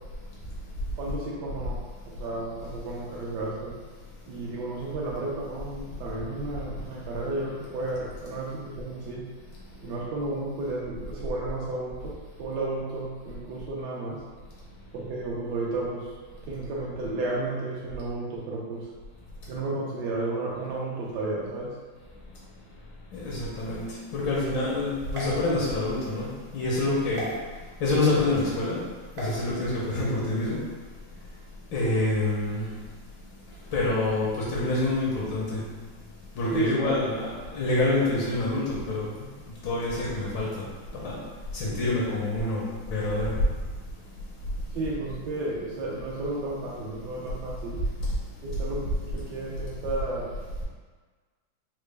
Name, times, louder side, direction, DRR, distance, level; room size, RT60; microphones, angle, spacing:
voice 1, 1.0-3.8 4.3-9.3 9.8-14.2 14.9-16.1 16.4-18.9 19.5-21.7 36.5-36.9 44.7-47.8 48.4-50.3, right 2 dB, 70° right, -4 dB, 1.1 m, -32 dB
voice 2, 23.1-23.9 24.1-27.3 27.8-28.8 29.2-30.6 31.7-32.7 33.7-35.6 36.4-39.3 39.6-40.6 40.9-41.2 41.5-43.3, left 2 dB, 80° left, -5 dB, 1.5 m, -27 dB
sound 1, 25.1-26.1 27.1-27.3 29.1-29.4, right 1 dB, 90° right, 1.6 m, -37 dB
4.0 x 2.1 x 3.2 m, 1.4 s
omnidirectional pair, 2.1 m